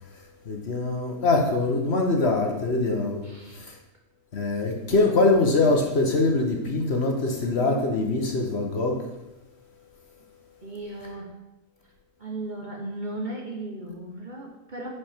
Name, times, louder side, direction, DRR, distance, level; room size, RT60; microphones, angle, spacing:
voice 1, 0.1-3.8 4.3-9.1, left 2 dB, 50° left, 1 dB, 1.3 m, -24 dB
voice 2, 3.3-3.6 10.6-11.3 12.2-14.9, right 2 dB, 35° right, -1 dB, 1.2 m, -36 dB
10.0 x 5.0 x 4.5 m, 0.97 s
omnidirectional pair, 1.5 m